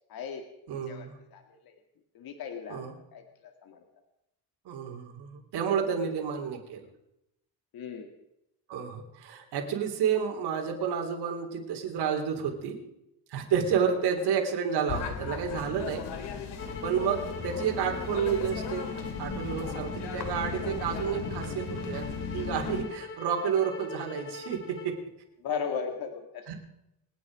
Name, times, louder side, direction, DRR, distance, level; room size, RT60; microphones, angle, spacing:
voice 1, 0.1-0.4 0.9-1.7 2.1-3.8 6.2-6.3 7.7-8.1 13.9-14.1 16.3-16.4 17.1-17.3 25.4-26.5, left 6 dB, 60° left, 5 dB, 2.1 m, -37 dB
voice 2, 0.7-1.1 2.7-2.9 4.6-6.9 8.7-12.8 13.3-16.0 16.8-18.8 19.2-22.1 22.3-24.9 26.5-26.6, right 7 dB, 75° right, 2 dB, 3.5 m, -30 dB
sound 1, 14.9-22.8, left 6 dB, 80° left, 2.5 m, -36 dB
sound 2, 16.6-24.9, left 3 dB, 35° left, 2.9 m, -41 dB
27.5 x 9.6 x 4.9 m, 0.85 s
cardioid pair, 145°, 40 cm